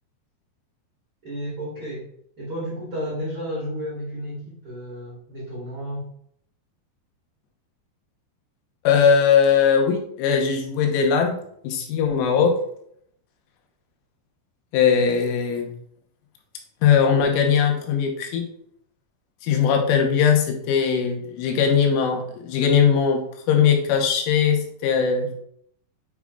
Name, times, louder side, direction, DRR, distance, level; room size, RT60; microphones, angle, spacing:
voice 1, 1.2-2.0 2.4-6.1, equal, 85° right, -6 dB, 1.1 m, -32 dB
voice 2, 8.9-11.4 11.6-12.6 14.7-15.7 16.8-18.5 19.4-25.4, left 7 dB, 85° left, 3 dB, 3.5 m, -20 dB
8.7 x 6.1 x 2.4 m, 0.68 s
omnidirectional pair, 5.6 m